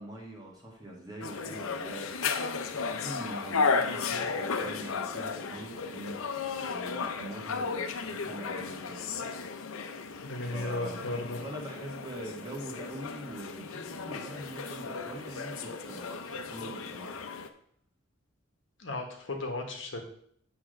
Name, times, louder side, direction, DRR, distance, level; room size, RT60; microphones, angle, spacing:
voice 1, 0.0-9.1 10.5-11.1 11.4-17.2 17.4-17.5, right 1 dB, 20° right, -2 dB, 1.8 m, -43 dB
sound 1, 1.2-17.5, left 5 dB, 90° left, 0.7 m, -34 dB
voice 2, 10.2-11.4 18.8-20.0, left 2 dB, 65° left, 2 dB, 1.3 m, -35 dB
8.6 x 3.5 x 6.4 m, 0.65 s
head